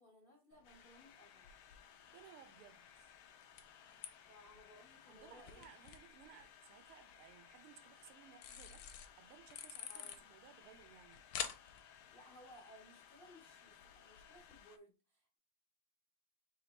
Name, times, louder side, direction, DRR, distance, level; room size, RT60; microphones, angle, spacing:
voice 1, 0.0-1.5 4.3-5.7 9.9-10.2 12.1-15.4, equal, 55° left, 0.6 m, -61 dB
sound 1, 0.5-14.6, left 9 dB, 90° left, 1.5 m, -53 dB
sound 2, 0.6-14.8, left 9 dB, 70° left, 1.0 m, -62 dB
voice 2, 2.1-3.2 5.1-11.2, right 9 dB, 80° right, 1.6 m, -61 dB
3.8 x 2.9 x 4.1 m
omnidirectional pair, 2.4 m